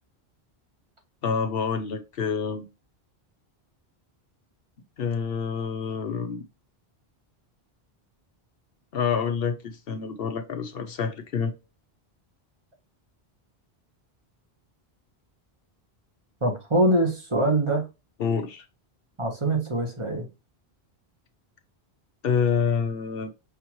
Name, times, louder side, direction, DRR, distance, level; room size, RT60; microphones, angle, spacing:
voice 1, 1.2-2.7 5.0-6.4 8.9-11.5 18.2-18.7 22.2-23.3, left 6 dB, 65° left, 0.9 m, -27 dB
voice 2, 16.4-17.9 19.2-20.3, right 1 dB, 30° right, 1.3 m, -23 dB
5.7 x 2.8 x 3.0 m
omnidirectional pair, 1.1 m